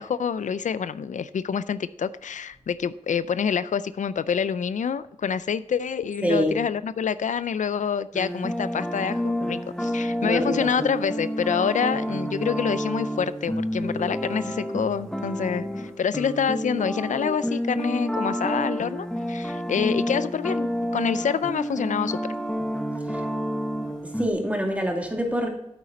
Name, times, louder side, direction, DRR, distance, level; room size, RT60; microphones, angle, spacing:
voice 1, 0.0-22.3, left 7 dB, 85° left, 15 dB, 0.4 m, -27 dB
voice 2, 6.2-6.6 10.2-10.9 23.1-23.2 24.0-25.5, equal, 10° right, 1 dB, 2.4 m, -26 dB
sound 1, 8.1-24.3, equal, 5° left, 1.1 m, -29 dB
8.9 x 8.4 x 4.0 m, 0.80 s
wide cardioid pair, 70°, 12 cm